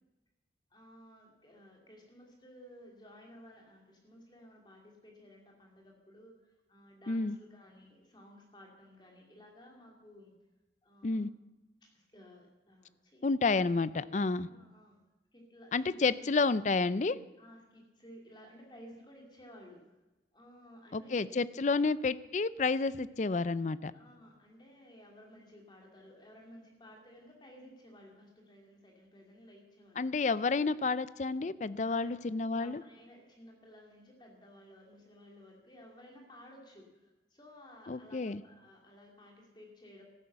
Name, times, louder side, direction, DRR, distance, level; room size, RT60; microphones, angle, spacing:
voice 1, 0.7-10.3 10.8-11.2 11.8-13.8 14.4-15.0 15.3-16.3 17.4-20.0 20.3-21.3 21.7-21.9 23.9-30.3 31.9-32.1 32.5-40.0, equal, 25° left, 0 dB, 2.7 m, -56 dB
voice 2, 13.2-14.5 15.7-17.2 20.9-23.9 30.0-32.8 37.9-38.4, left 3 dB, 40° left, 17 dB, 0.4 m, -30 dB
14.5 x 11.5 x 6.9 m, 1.1 s
head